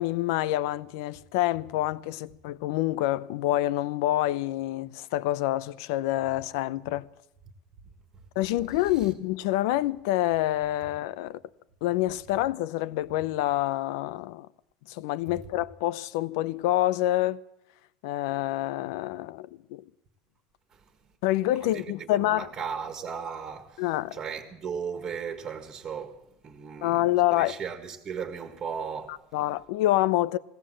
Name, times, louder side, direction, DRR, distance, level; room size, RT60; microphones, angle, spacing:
voice 1, 0.0-7.1 8.4-11.4 11.8-14.5 14.9-17.4 18.0-19.8 21.2-22.5 23.8-24.2 26.8-27.6 29.3-30.4, left 15 dB, 75° left, 0.8 m, -27 dB
voice 2, 21.6-29.2, right 6 dB, 25° right, 1.7 m, -37 dB
20.0 x 17.0 x 7.6 m
cardioid pair, 165°, 2 cm